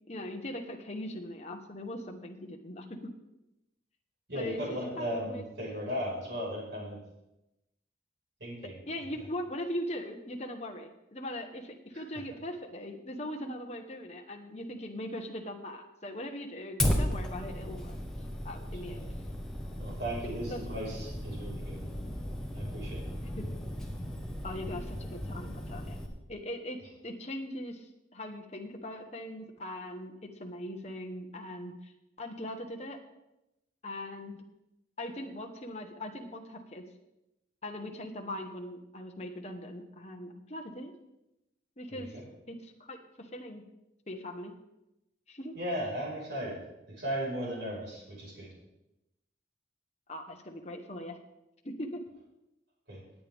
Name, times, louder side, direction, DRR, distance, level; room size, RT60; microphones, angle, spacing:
voice 1, 0.1-2.9 4.3-5.4 8.9-18.0 18.4-19.1 20.5-20.6 23.4-23.5 24.4-26.0 26.3-26.8 27.0-31.9 32.2-33.0 33.8-34.4 35.0-36.8 37.6-40.9 41.8-42.2 42.5-43.6 44.1-44.5 45.3-45.5 50.1-51.2 51.6-52.0, left 1 dB, 35° left, 2 dB, 1.2 m, -40 dB
voice 2, 4.3-7.0 8.4-8.8 18.8-19.1 19.8-21.9 22.5-23.1 41.9-42.2 45.5-46.6 46.9-48.5 52.9-53.0, equal, 65° right, -4 dB, 5.5 m, -36 dB
Fire, 16.8-26.1, equal, 5° left, 1.3 m, -35 dB
19.0 x 8.7 x 3.6 m, 0.92 s
head